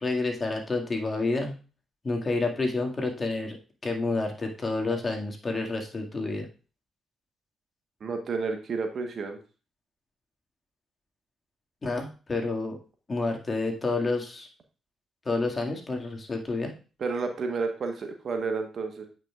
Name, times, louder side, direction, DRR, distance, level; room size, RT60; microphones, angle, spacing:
voice 1, 0.0-1.5 2.0-3.6 3.8-6.5 11.8-12.8 13.1-14.5 15.3-16.7, left 3 dB, 35° left, 2 dB, 2.0 m, -29 dB
voice 2, 8.0-9.4 17.0-19.1, right 4 dB, 55° right, 5 dB, 1.2 m, -31 dB
8.9 x 5.5 x 2.4 m, 0.35 s
hypercardioid pair, 45°, 0 cm